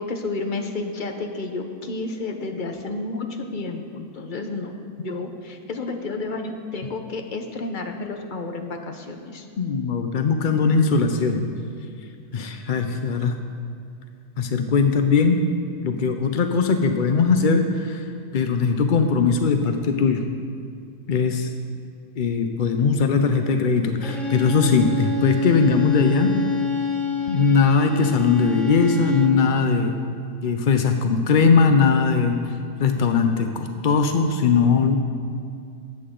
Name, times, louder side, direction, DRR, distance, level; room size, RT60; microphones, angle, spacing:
voice 1, 0.0-3.3 3.5-4.7 5.0-9.5, left 3 dB, 40° left, 4 dB, 0.9 m, -31 dB
voice 2, 9.6-11.5 12.3-13.4 14.4-15.4 15.8-18.1 18.3-20.2 21.1-21.5 22.2-26.3 27.3-30.0 30.4-32.4 32.8-35.0, left 5 dB, 70° left, 6 dB, 0.4 m, -20 dB
Bowed string instrument, 24.0-29.5, left 3 dB, ahead, 1.0 m, -27 dB
20.0 x 8.6 x 3.8 m, 2.3 s
omnidirectional pair, 1.7 m